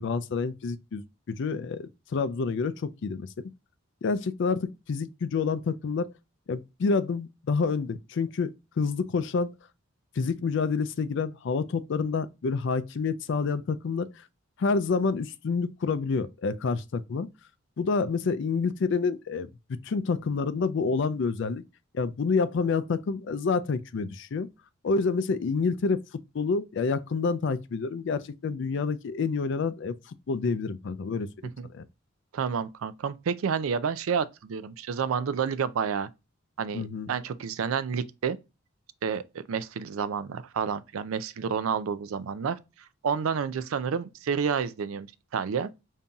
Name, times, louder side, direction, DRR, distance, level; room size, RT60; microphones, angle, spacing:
voice 1, 0.0-3.3 4.0-6.1 6.5-9.5 10.2-14.1 14.6-17.3 17.8-21.6 21.9-24.5 24.8-26.0 26.3-30.0 30.3-31.3 31.7-31.9 36.7-37.1, left 4 dB, 60° left, 0.4 m, -28 dB
voice 2, 32.3-36.1 36.6-38.4 39.0-42.6 43.0-45.7, right 6 dB, 85° right, 0.4 m, -29 dB
5.3 x 2.7 x 2.3 m
head